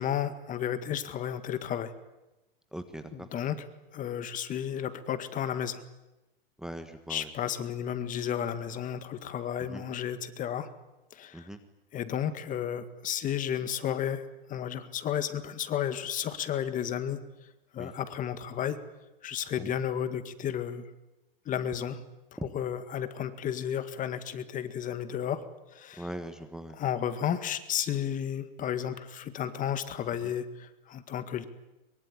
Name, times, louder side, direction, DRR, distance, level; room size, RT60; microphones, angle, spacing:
voice 1, 0.0-1.9 3.1-3.7 3.9-5.8 7.1-10.7 11.1-11.5 11.9-17.2 17.7-18.8 19.2-20.9 21.5-22.0 22.4-26.1 26.7-31.5, left 9 dB, 25° left, 11 dB, 1.9 m, -33 dB
voice 2, 2.7-3.3 6.6-7.3 9.7-9.8 11.3-11.6 17.8-17.9 19.6-19.7 22.4-22.5 26.0-26.8, right 1 dB, ahead, 7 dB, 1.4 m, -40 dB
23.0 x 23.0 x 9.9 m, 1.0 s
hypercardioid pair, 135°, 29 cm